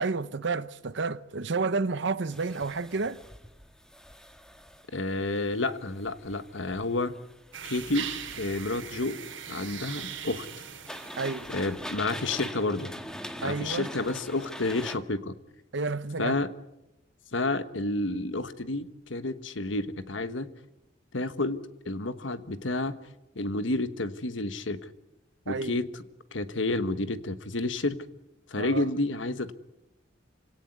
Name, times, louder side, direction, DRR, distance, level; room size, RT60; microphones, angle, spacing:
voice 1, 0.0-3.2 11.2-11.5 13.4-13.9 15.7-16.4 25.5-25.8 28.6-28.9, right 4 dB, 65° right, 0.8 m, -30 dB
sound 1, 2.3-15.0, equal, 5° left, 1.5 m, -44 dB
voice 2, 4.9-7.1 7.6-8.1 8.4-9.2 9.5-10.5 11.5-12.9 13.4-15.4 16.2-16.5 17.3-20.5 21.1-21.6 21.8-23.0 23.3-24.8 25.5-26.0 26.3-28.0 28.5-29.5, left 2 dB, 75° left, 1.3 m, -30 dB
sound 2, 7.5-11.9, right 8 dB, 80° right, 3.2 m, -40 dB
26.5 x 17.5 x 9.6 m
head